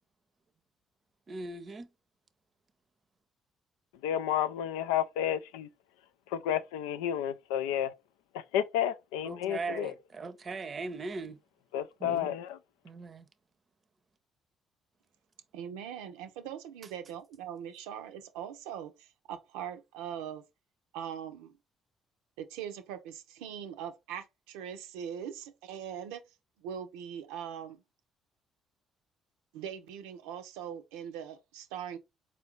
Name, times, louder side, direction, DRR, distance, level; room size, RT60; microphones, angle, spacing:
voice 1, 1.3-1.9 9.2-11.4 12.0-12.3 12.8-13.3, right 3 dB, 45° right, 0.6 m, -39 dB
voice 2, 4.0-5.7 6.3-7.9 8.3-9.9 11.7-12.6, left 10 dB, 85° left, 0.3 m, -31 dB
voice 3, 15.5-20.4 20.9-21.6 22.4-26.2 26.6-27.8 29.5-32.0, right 9 dB, 85° right, 0.6 m, -41 dB
4.3 x 2.5 x 3.0 m
hypercardioid pair, 55°, 0 cm